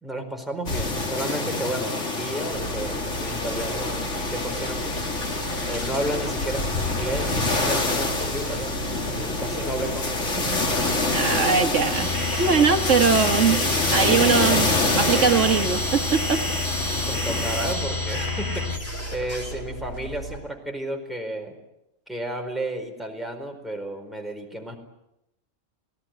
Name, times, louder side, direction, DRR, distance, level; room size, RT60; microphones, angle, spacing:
voice 1, 0.0-5.0 5.7-10.6 16.9-21.6 22.1-24.8, right 1 dB, ahead, 2 dB, 4.5 m, -32 dB
sound 1, 0.7-17.7, left 2 dB, 70° left, 2.9 m, -26 dB
sound 2, 2.5-20.4, right 1 dB, 50° left, 4.9 m, -36 dB
voice 2, 11.1-12.1 12.4-13.6 13.9-16.4, right 6 dB, 70° right, 6 dB, 1.5 m, -21 dB
sound 3, 11.9-18.8, left 3 dB, 15° left, 1.8 m, -29 dB
29.0 x 18.0 x 9.1 m, 0.87 s
omnidirectional pair, 1.3 m